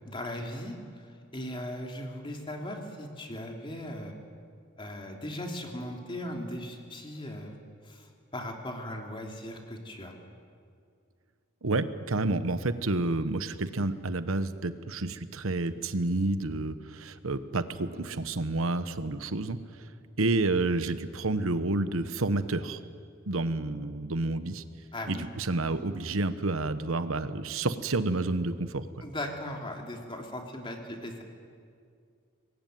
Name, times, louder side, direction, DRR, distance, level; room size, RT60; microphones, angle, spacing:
voice 1, 0.1-4.1 4.8-7.6 7.8-10.2 24.9-25.3 29.0-31.2, left 1 dB, 25° left, 1 dB, 3.2 m, -38 dB
voice 2, 11.6-19.6 20.2-22.8 23.3-24.6 25.1-28.8, right 2 dB, 80° right, 11 dB, 1.1 m, -29 dB
25.0 x 21.0 x 9.2 m, 2.3 s
head